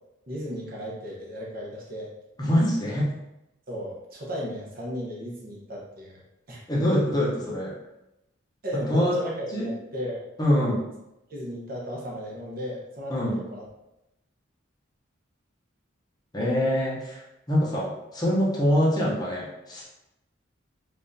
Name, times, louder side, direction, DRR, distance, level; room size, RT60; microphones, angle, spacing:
voice 1, 0.3-2.1 3.7-6.2 6.5-6.6 8.6-10.3 11.3-13.6, equal, 45° right, -3 dB, 0.9 m, -35 dB
voice 2, 2.4-3.1 6.7-7.7 8.9-9.2 9.5-9.7 10.4-10.8 13.1-13.4 16.3-19.8, equal, 20° left, -4 dB, 0.7 m, -24 dB
3.6 x 3.5 x 2.7 m, 0.89 s
head